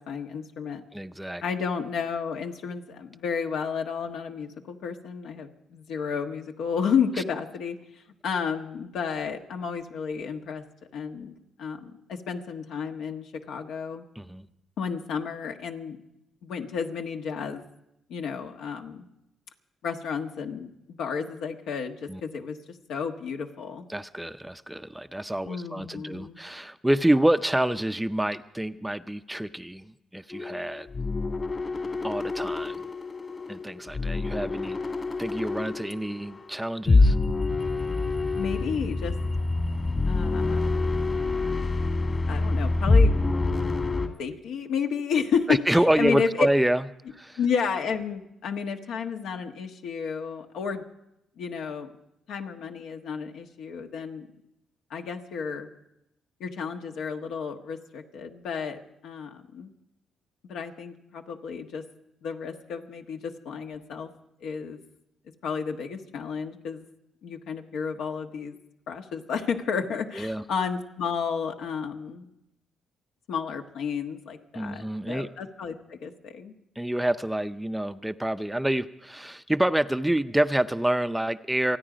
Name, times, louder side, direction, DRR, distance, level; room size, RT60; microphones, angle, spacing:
voice 1, 0.0-0.8 1.4-7.8 8.2-10.6 10.9-11.3 11.6-14.1 14.8-16.0 16.4-17.6 18.1-19.1 19.8-22.6 22.9-23.9 25.4-26.4 38.4-39.2 40.1-40.6 42.3-43.2 44.2-46.5 47.4-50.8 51.4-51.9 52.3-54.3 54.9-55.7 56.4-59.7 60.4-61.8 62.2-64.1 64.4-64.8 65.4-66.8 67.2-68.6 68.9-72.3 73.3-76.5, left 6 dB, 80° left, 4 dB, 1.4 m, -32 dB
voice 2, 0.9-1.4 14.2-14.5 22.1-22.2 23.9-30.9 32.0-32.8 33.5-34.8 35.2-37.2 45.5-46.9 47.1-47.4 70.1-70.4 74.5-75.3 76.8-81.8, right 1 dB, 5° right, 11 dB, 0.5 m, -27 dB
sound 1, 30.3-44.1, left 3 dB, 40° left, 1.9 m, -26 dB
28.0 x 9.5 x 5.0 m, 0.83 s
cardioid pair, 90°, 0 cm